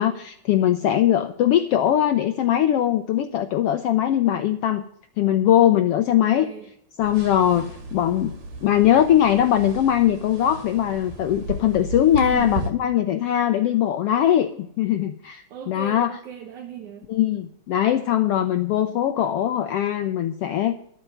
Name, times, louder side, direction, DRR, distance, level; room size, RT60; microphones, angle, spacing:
voice 1, 0.0-4.8 5.2-6.5 7.0-8.3 8.6-16.1 17.1-20.7, left 11 dB, 75° left, 8 dB, 1.4 m, -21 dB
voice 2, 6.4-6.7 12.1-12.7 13.4-13.7 15.5-17.1, right 10 dB, 80° right, 3 dB, 2.8 m, -37 dB
sound 1, 7.0-12.7, right 2 dB, 60° right, 3.6 m, -34 dB
12.5 x 8.0 x 7.9 m, 0.70 s
omnidirectional pair, 3.4 m